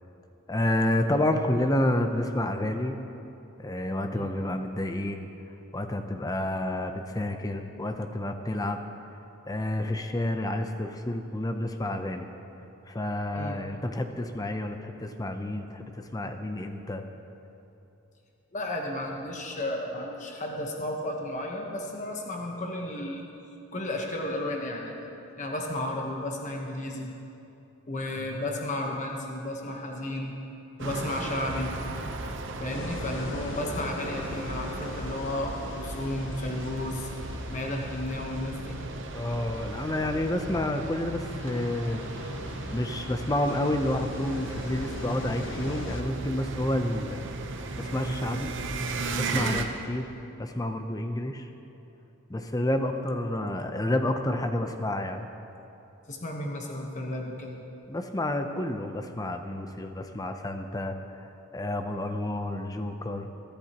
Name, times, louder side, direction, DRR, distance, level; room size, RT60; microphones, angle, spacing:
voice 1, 0.5-3.0 3.6-5.3 5.7-8.8 9.5-12.3 12.9-17.0 39.1-42.0 42.7-47.3 47.8-48.5 49.1-50.1 50.4-51.5 52.3-55.2 57.9-61.0 61.5-63.3, left 1 dB, 15° left, 6 dB, 0.6 m, -29 dB
voice 2, 18.5-23.2 23.7-27.1 27.9-30.3 30.8-31.7 32.6-37.1 37.5-38.8 56.1-57.6, left 1 dB, 35° left, 0 dB, 1.1 m, -33 dB
sound 1, 30.8-49.6, right 2 dB, 55° right, 0.8 m, -35 dB
sound 2, 32.7-46.0, left 3 dB, 55° left, 0.6 m, -42 dB
22.0 x 10.5 x 3.0 m, 2.9 s
head